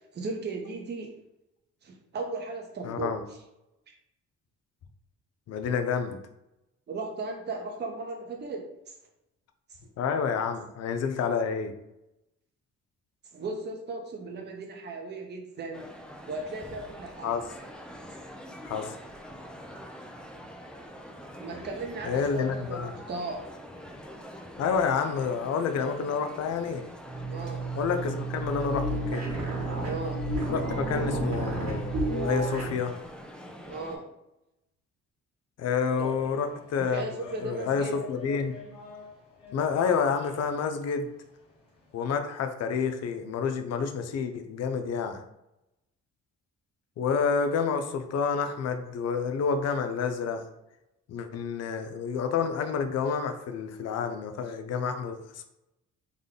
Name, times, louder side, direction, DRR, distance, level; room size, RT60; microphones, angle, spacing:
voice 1, 0.1-1.1 1.8-3.4 6.9-8.9 13.3-15.9 16.3-17.4 21.4-23.5 27.3-27.7 29.8-30.2 33.7-34.1 36.0-36.1 36.9-37.9, right 3 dB, 35° right, 0 dB, 0.7 m, -36 dB
voice 2, 2.8-3.2 5.5-6.2 10.0-11.8 17.2-17.4 18.6-18.9 22.0-22.9 24.6-26.8 27.8-29.3 30.5-33.0 35.6-37.1 37.4-38.6 39.5-41.1 41.9-45.2 47.0-50.5 51.1-55.4, left 6 dB, 60° left, 6 dB, 0.5 m, -29 dB
Male speech man speaking, 15.7-34.0, equal, 5° left, 0.4 m, -45 dB
sound 1, 27.0-32.8, right 2 dB, 60° right, 1.3 m, -31 dB
sound 2, 35.9-42.2, left 3 dB, 20° left, 1.2 m, -48 dB
3.5 x 2.2 x 3.6 m, 0.88 s
cardioid pair, 90°, 30 cm